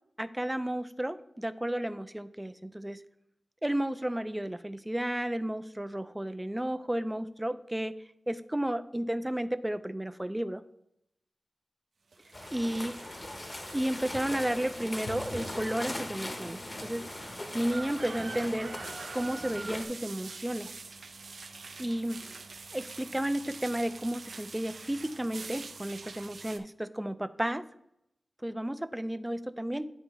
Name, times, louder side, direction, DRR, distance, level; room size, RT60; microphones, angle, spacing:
voice 1, 0.2-3.0 3.6-10.6 12.5-13.0 13.7-17.2 17.5-18.8 19.1-20.7 21.8-22.2 22.7-27.7 28.4-29.9, right 1 dB, 10° right, 12 dB, 0.3 m, -33 dB
sound 1, 12.1-26.6, right 4 dB, 85° right, 0.5 m, -45 dB
sound 2, 12.3-19.9, left 1 dB, 30° left, 0.7 m, -40 dB
Bowed string instrument, 15.1-19.9, left 3 dB, 70° left, 0.4 m, -49 dB
9.9 x 4.0 x 3.4 m, 0.79 s
wide cardioid pair, 105°, 0 cm